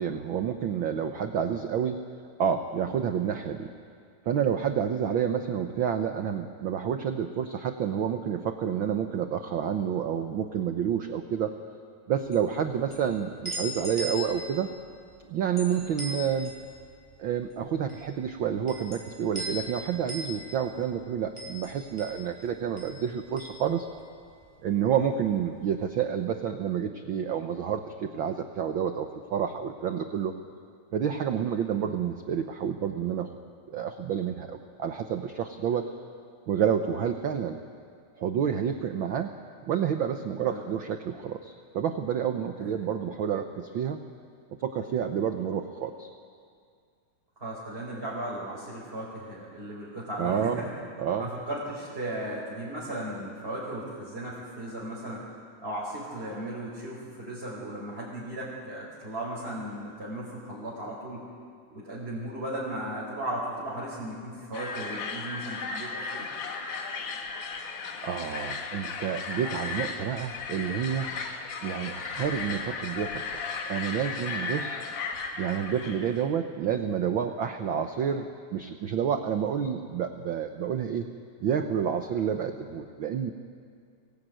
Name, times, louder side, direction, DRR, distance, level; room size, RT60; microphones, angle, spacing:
voice 1, 0.0-2.0 2.4-3.7 4.2-11.5 12.1-14.7 15.3-16.5 17.2-23.9 24.6-30.3 30.9-33.3 33.7-35.9 36.5-37.6 38.2-39.3 39.7-44.0 44.6-46.1 50.2-50.6 51.0-51.3 68.0-71.1 71.6-74.8 75.4-81.0 81.4-83.3, right 8 dB, 80° right, 6 dB, 1.1 m, -29 dB
sound 1, 12.3-24.5 24.8-25.8, equal, 10° left, 4.5 m, -40 dB
voice 2, 47.4-50.7 51.2-55.2 55.6-61.2 61.7-66.3, right 1 dB, 20° right, -7 dB, 4.7 m, -36 dB
sound 2, 64.5-76.3, left 4 dB, 80° left, 3.1 m, -35 dB
24.0 x 19.0 x 9.1 m, 2.2 s
omnidirectional pair, 3.5 m